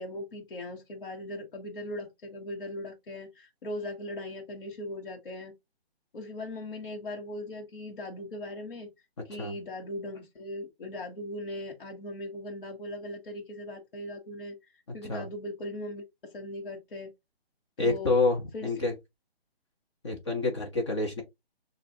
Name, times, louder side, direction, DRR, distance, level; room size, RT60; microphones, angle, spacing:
voice 1, 0.0-5.5 6.1-8.9 9.3-14.6 14.9-17.1 17.8-18.1 18.5-18.7, left 1 dB, 55° left, 1.2 m, -39 dB
voice 2, 17.8-18.9 20.0-21.2, left 3 dB, 25° left, 0.8 m, -28 dB
6.7 x 2.5 x 2.7 m
hypercardioid pair, 160°, 31 cm